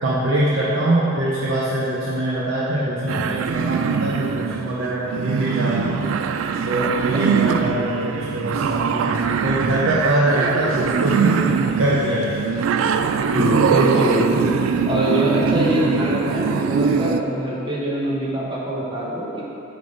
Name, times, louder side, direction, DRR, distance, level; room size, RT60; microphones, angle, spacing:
voice 1, 0.0-6.1 6.7-11.4 11.8-12.4, right 1 dB, 70° right, -7 dB, 0.8 m, -23 dB
sound 1, 3.1-17.2, right 6 dB, 90° right, 0.3 m, -22 dB
voice 2, 6.8-7.2 13.3-14.5 14.9-19.4, right 1 dB, 25° right, -5 dB, 1.1 m, -23 dB
8.7 x 3.6 x 3.9 m, 2.9 s
head